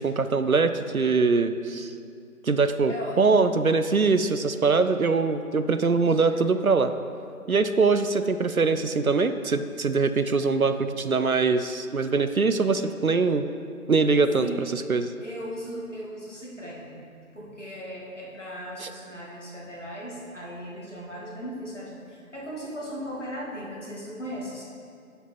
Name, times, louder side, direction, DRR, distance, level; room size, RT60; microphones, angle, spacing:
voice 1, 0.0-1.9 2.4-6.9 7.5-13.5 13.9-15.1 18.8-18.9, right 4 dB, 65° right, 10 dB, 0.5 m, -23 dB
voice 2, 2.9-3.5 6.0-6.4 14.4-14.6 15.2-17.0 17.3-24.6, equal, 50° left, -4 dB, 2.0 m, -37 dB
10.5 x 5.3 x 4.4 m, 2.4 s
figure-of-eight pair, 175°, 45 cm